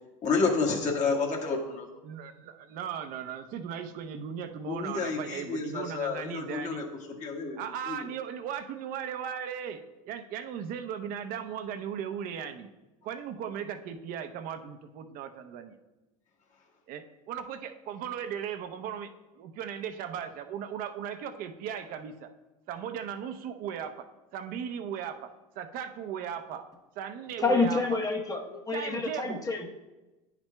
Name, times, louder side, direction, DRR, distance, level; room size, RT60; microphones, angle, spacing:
voice 1, 0.2-1.9 4.7-6.8 7.2-8.0, left 4 dB, 45° left, -1 dB, 1.7 m, -30 dB
voice 2, 2.0-6.9 7.5-12.7 13.0-15.8 16.9-19.1 19.4-22.3 22.7-24.1 24.3-26.6 26.9-28.0 28.7-29.4, right 8 dB, 55° right, 8 dB, 0.7 m, -37 dB
voice 3, 27.4-29.7, left 3 dB, 20° left, 2 dB, 1.0 m, -28 dB
10.0 x 5.9 x 2.3 m, 1.1 s
hypercardioid pair, 90°, 17 cm